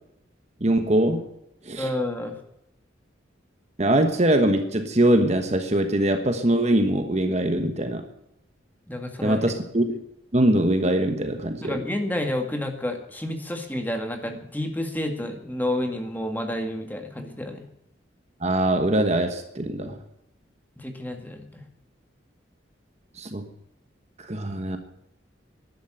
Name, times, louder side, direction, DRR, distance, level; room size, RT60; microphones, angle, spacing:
voice 1, 0.6-1.2 1.6-1.9 3.8-8.0 9.2-10.0 10.3-11.8 18.4-20.0 23.2-23.4 24.2-24.8, right 1 dB, 35° right, 7 dB, 1.2 m, -22 dB
voice 2, 1.8-2.4 8.9-9.4 11.6-17.6 20.8-21.6, left 1 dB, 10° left, 4 dB, 1.9 m, -30 dB
11.5 x 11.0 x 9.0 m, 0.83 s
head